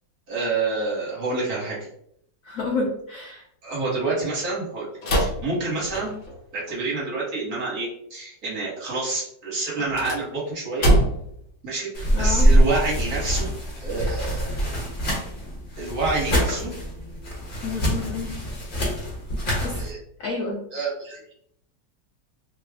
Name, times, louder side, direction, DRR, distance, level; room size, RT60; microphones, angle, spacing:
voice 1, 0.3-1.9 3.6-4.9 5.2-6.1 6.5-10.9 11.6-13.5 13.8-14.6 15.8-16.7 19.8-20.0 20.7-21.2, right 3 dB, 55° right, -5 dB, 1.6 m, -28 dB
voice 2, 2.4-3.4 12.1-12.5 17.6-18.3 19.6-19.8 20.2-20.6, left 3 dB, 80° left, 0 dB, 0.7 m, -29 dB
sound 1, 5.0-6.4 9.7-11.4, right 1 dB, 50° left, 1.0 m, -24 dB
Toilet roll, 11.9-19.9, equal, 30° left, 1.2 m, -24 dB
3.3 x 2.3 x 3.4 m, 0.70 s
omnidirectional pair, 2.0 m